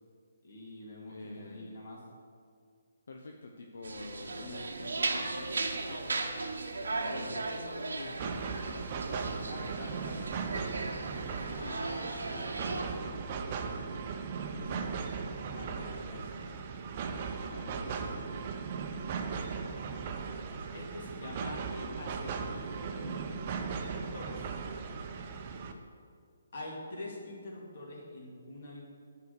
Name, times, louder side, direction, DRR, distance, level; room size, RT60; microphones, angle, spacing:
voice 1, 0.4-2.0 7.1-7.3 9.4-10.3 11.3-13.2 15.5-16.6 17.5-18.1 20.7-24.6 26.5-28.8, left 1 dB, 55° left, -2 dB, 2.6 m, -45 dB
voice 2, 1.1-1.8 3.1-6.3 6.9-8.8 11.6-11.8 14.5-15.0 25.7-25.8, left 2 dB, 80° left, 2 dB, 0.8 m, -47 dB
sound 1, 3.8-12.8, right 3 dB, 85° right, 1.0 m, -37 dB
sound 2, 8.2-25.7, right 5 dB, 30° right, 0.7 m, -38 dB
9.5 x 4.9 x 6.5 m, 2.1 s
hypercardioid pair, 160°, 0 cm